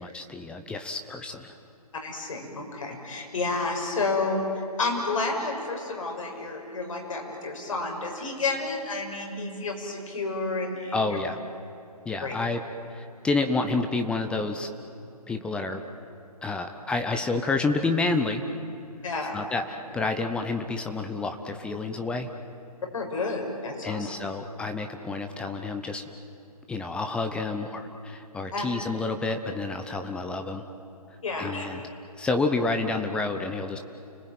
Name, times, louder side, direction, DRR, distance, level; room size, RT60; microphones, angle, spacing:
voice 1, 0.0-1.5 10.9-11.4 12.0-12.6 12.9-14.7 15.3-15.8 16.4-18.4 19.3-22.3 23.8-26.1 26.7-30.7 31.4-31.8 32.2-33.8, left 3 dB, 5° left, 6 dB, 0.7 m, -29 dB
voice 2, 2.0-11.2 12.2-12.3 19.0-19.4 22.9-24.1 28.5-28.7 31.2-31.6, left 3 dB, 55° left, 2 dB, 6.6 m, -30 dB
30.0 x 20.0 x 9.3 m, 2.7 s
figure-of-eight pair, 145°, 20 cm